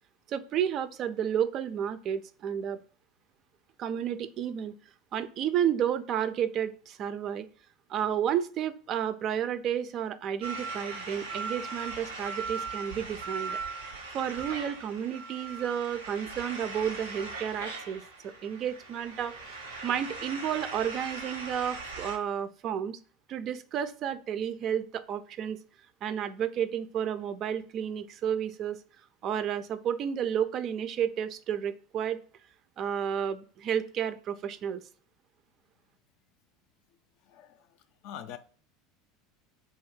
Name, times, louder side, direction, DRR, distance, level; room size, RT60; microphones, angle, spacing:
voice 1, 0.3-2.8 3.8-4.7 5.1-7.5 7.9-13.6 14.1-19.3 19.8-23.0 23.3-25.6 26.0-28.8 29.2-32.2 32.8-34.8, right 9 dB, 45° right, 0.3 m, -31 dB
sound 1, 10.4-22.2, right 4 dB, 90° right, 0.7 m, -39 dB
voice 2, 37.3-37.8 38.0-38.4, left 10 dB, 60° left, 0.3 m, -44 dB
2.6 x 2.4 x 3.2 m
hypercardioid pair, 80°, 0 cm